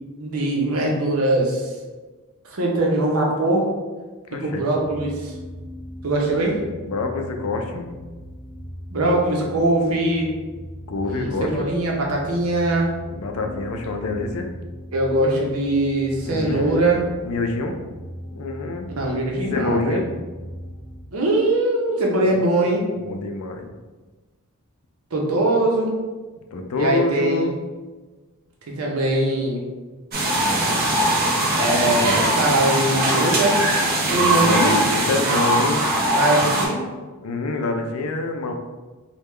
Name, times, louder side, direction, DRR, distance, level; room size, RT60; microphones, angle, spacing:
voice 1, 0.2-1.7 2.4-3.7 4.3-5.3 6.0-6.6 8.9-10.3 11.0-12.9 14.9-17.0 19.0-20.0 21.1-22.8 25.1-26.0 26.8-27.6 28.8-29.6 31.5-33.6 34.1-34.8 36.1-36.8, right 2 dB, 80° right, -1 dB, 0.8 m, -21 dB
voice 2, 4.3-4.6 6.9-7.9 10.9-11.7 13.1-14.5 16.2-16.9 17.2-17.8 18.3-18.9 19.5-20.1 22.2-22.3 22.9-23.7 26.5-27.6 31.8-32.3 34.1-35.9 37.2-38.5, left 3 dB, 80° left, 4 dB, 0.4 m, -26 dB
sound 1, 4.8-21.0, equal, 10° right, 0.4 m, -38 dB
sound 2, 30.1-36.7, right 1 dB, 45° right, 0.8 m, -20 dB
3.4 x 2.3 x 3.2 m, 1.3 s
head